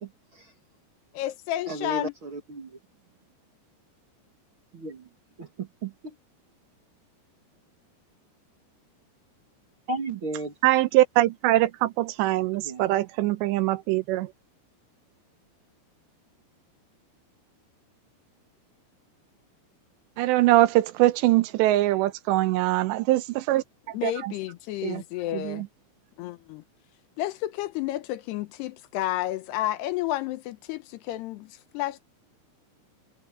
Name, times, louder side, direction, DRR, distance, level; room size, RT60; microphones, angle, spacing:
voice 1, 1.1-2.1 23.9-25.6 26.2-26.6 27.2-32.0, left 14 dB, 75° left, 2.7 m, -31 dB
voice 2, 1.7-2.7 4.7-5.0 5.4-6.1 9.9-10.5 12.6-12.8, right 2 dB, 50° right, 1.5 m, -34 dB
voice 3, 10.6-14.3 20.2-23.6 24.0-24.3 24.8-25.0 25.3-25.7, right 16 dB, 80° right, 2.9 m, -22 dB
omnidirectional pair, 5.2 m